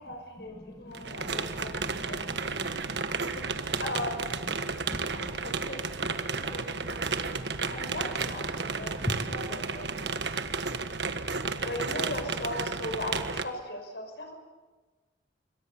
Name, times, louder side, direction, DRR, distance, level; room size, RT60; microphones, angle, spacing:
voice 1, 0.0-1.7 2.0-2.3 3.1-3.5 3.8-4.3 5.1-10.1 11.6-14.3, left 1 dB, 65° left, 4 dB, 6.1 m, -39 dB
voice 2, 0.5-2.7 3.1-3.4 4.6-5.5 7.2-7.7 8.6-9.3, equal, 20° left, 6 dB, 2.3 m, -41 dB
sound 1, 0.9-13.4, right 4 dB, 65° right, 1.6 m, -32 dB
27.0 x 24.5 x 7.2 m, 1.3 s
head